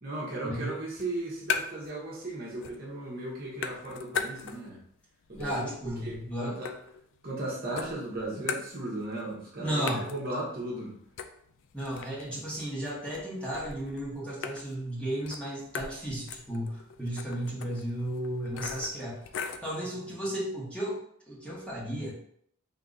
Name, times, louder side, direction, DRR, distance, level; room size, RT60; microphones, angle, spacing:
voice 1, 0.0-4.8 5.3-6.7 7.2-10.9 19.8-20.0, right 1 dB, 45° right, -4 dB, 1.1 m, -36 dB
sound 1, 0.9-2.0 2.3-3.0 3.2-4.8 5.2-7.4 7.8-9.2 9.5-9.6 9.9-19.7, left 5 dB, 60° left, 0.3 m, -39 dB
voice 2, 5.4-6.6 9.6-10.1 11.7-19.2 19.6-21.0 21.3-22.1, right 1 dB, 5° left, -7 dB, 1.1 m, -34 dB
3.8 x 2.8 x 3.7 m, 0.66 s
head